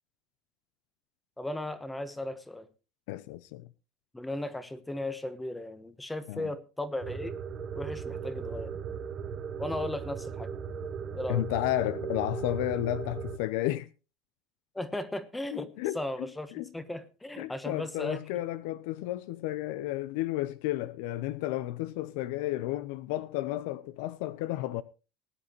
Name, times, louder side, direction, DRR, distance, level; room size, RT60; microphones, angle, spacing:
voice 1, 1.4-2.7 4.1-7.3 7.7-8.7 9.6-10.5 11.1-11.4 14.7-15.7 15.9-18.2, left 1 dB, 5° left, 1.1 m, -36 dB
voice 2, 3.1-3.7 6.3-6.5 11.3-13.9 15.5-16.0 16.5-16.7 17.4-24.8, left 15 dB, 80° left, 0.6 m, -32 dB
sound 1, 7.0-13.4, right 6 dB, 30° right, 1.2 m, -37 dB
19.5 x 9.7 x 3.1 m
cardioid pair, 155°, 0 cm